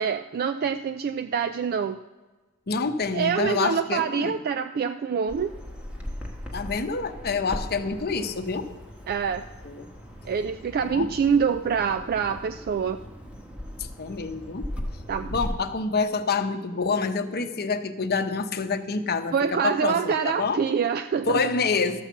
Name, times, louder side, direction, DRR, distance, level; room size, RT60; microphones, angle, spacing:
voice 1, 0.0-2.0 3.1-5.5 9.1-9.4 10.2-13.0 15.1-15.4 19.3-21.4, right 6 dB, 40° right, 10 dB, 0.3 m, -25 dB
voice 2, 2.7-4.4 6.5-8.7 9.6-9.8 10.8-11.1 14.0-14.7 15.3-19.3 19.6-20.6 21.3-22.0, left 4 dB, 45° left, 7 dB, 0.8 m, -27 dB
Bird vocalization bird call bird song, 5.3-15.5, left 1 dB, 5° right, 1.4 m, -38 dB
13.0 x 5.9 x 7.1 m, 1.2 s
head